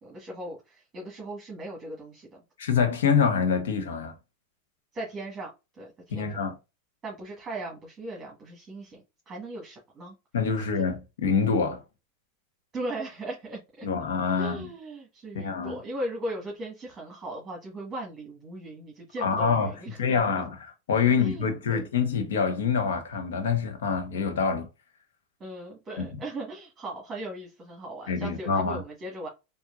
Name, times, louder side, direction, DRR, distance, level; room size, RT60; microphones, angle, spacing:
voice 1, 0.0-2.4 4.9-6.4 7.0-10.1 10.6-10.8 12.7-13.9 14.3-20.2 21.1-21.8 25.4-29.3, right 1 dB, 20° right, 1.4 m, -38 dB
voice 2, 2.6-4.1 6.1-6.6 10.3-11.8 13.8-14.7 15.3-15.8 19.2-19.7 20.0-24.7 26.0-26.2 28.1-28.8, left 6 dB, 85° left, 1.0 m, -26 dB
4.6 x 2.7 x 2.5 m
supercardioid pair, 125°, 0 cm